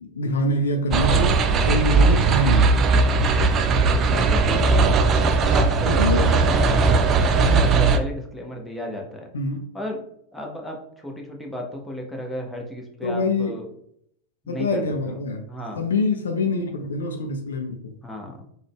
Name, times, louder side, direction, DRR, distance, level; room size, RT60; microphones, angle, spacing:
voice 1, 0.0-1.4 1.6-2.7 5.9-6.2 7.4-7.7 9.3-9.6 13.0-13.6 14.5-15.4 15.8-17.9, left 2 dB, 65° left, 5 dB, 0.4 m, -25 dB
sound 1, 0.9-8.0, right 4 dB, 30° right, 0.3 m, -18 dB
voice 2, 4.1-5.0 5.5-7.1 7.5-9.3 9.7-10.1 10.3-13.7 14.4-15.2 15.5-15.8 18.0-18.4, left 1 dB, 5° left, 0 dB, 0.7 m, -34 dB
3.5 x 2.2 x 3.5 m, 0.70 s
figure-of-eight pair, 90°, 0 cm